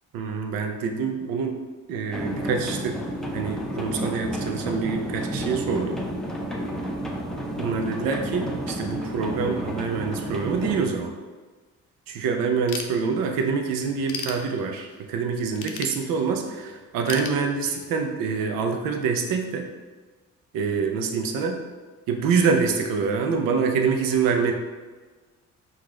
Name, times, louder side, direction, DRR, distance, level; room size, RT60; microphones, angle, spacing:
voice 1, 0.1-1.6 1.9-3.0 3.3-6.0 7.6-11.2 12.1-19.7 20.5-21.6 22.1-24.5, right 5 dB, 90° right, 4 dB, 0.6 m, -26 dB
sound 1, 2.1-10.9, right 1 dB, ahead, 0.6 m, -31 dB
Ratchet pawl / Tools, 12.7-13.5 13.9-15.0 15.6-16.5 17.1-18.0, left 5 dB, 70° left, 0.6 m, -35 dB
4.8 x 2.5 x 3.7 m, 1.4 s
cardioid pair, 75°, 33 cm